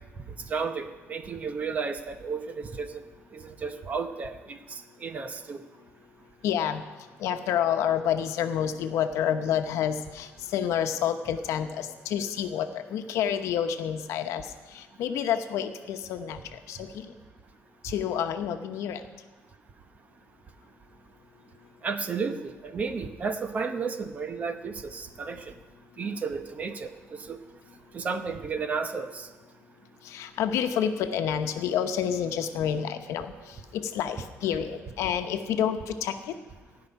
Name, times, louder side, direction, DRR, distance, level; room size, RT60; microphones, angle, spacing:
voice 1, 0.5-2.9 3.3-5.6 21.8-25.4 26.0-26.9 27.3-27.4 27.9-29.3, right 5 dB, 30° right, 8 dB, 0.9 m, -33 dB
voice 2, 6.4-6.8 7.2-17.1 17.8-19.0 30.0-36.3, left 9 dB, 85° left, 7 dB, 1.0 m, -29 dB
16.0 x 5.8 x 9.9 m, 1.3 s
cardioid pair, 160°, 5 cm